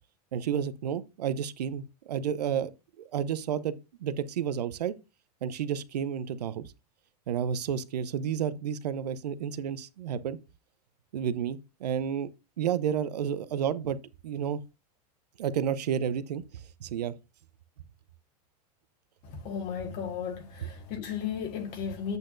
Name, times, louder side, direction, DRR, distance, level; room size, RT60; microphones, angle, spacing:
voice 1, 0.3-2.7 3.0-3.7 4.0-4.9 5.4-6.7 7.3-10.4 11.1-12.3 12.6-14.0 14.2-14.6 15.4-17.1, right 8 dB, 85° right, 0.7 m, -31 dB
voice 2, 19.2-22.2, left 7 dB, 50° left, 1.8 m, -35 dB
8.2 x 6.4 x 2.5 m
hypercardioid pair, 110°, 20 cm